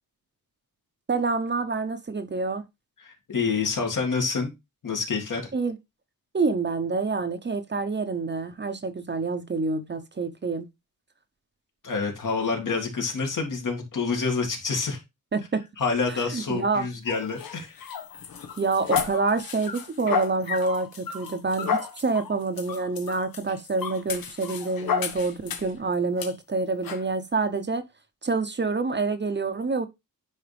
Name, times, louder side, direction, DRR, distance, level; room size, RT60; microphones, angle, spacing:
voice 1, 1.1-2.6 5.5-5.8 6.3-10.7 15.3-15.6 16.3-16.9 18.6-27.8 28.2-29.9, right 3 dB, 30° right, 0.8 m, -27 dB
voice 2, 3.0-4.5 4.8-5.5 11.8-15.0 15.8-17.7, left 4 dB, 65° left, 2.3 m, -27 dB
sound 1, 17.1-25.8 26.2-26.3 26.8-27.0, left 7 dB, 80° left, 1.2 m, -32 dB
9.7 x 4.2 x 3.4 m
wide cardioid pair, 100°, 34 cm